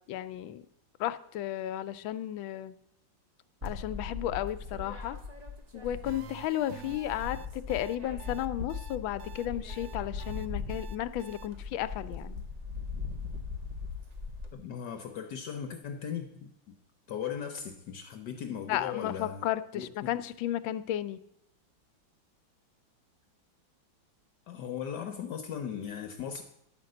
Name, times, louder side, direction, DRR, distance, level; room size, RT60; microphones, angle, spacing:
voice 1, 0.1-0.6 1.0-2.7 3.6-5.2 5.7-12.4 18.7-21.2, left 12 dB, 85° left, 13 dB, 1.4 m, -34 dB
sound 1, 3.6-6.5 6.8-14.5, left 4 dB, 30° right, 0.7 m, -39 dB
sound 2, 6.0-11.5, right 10 dB, 70° right, 0.9 m, -49 dB
voice 2, 14.5-16.8 17.1-19.5 19.7-20.1 24.5-26.4, left 8 dB, 65° left, 6 dB, 1.3 m, -38 dB
11.0 x 5.2 x 7.7 m, 0.75 s
omnidirectional pair, 2.1 m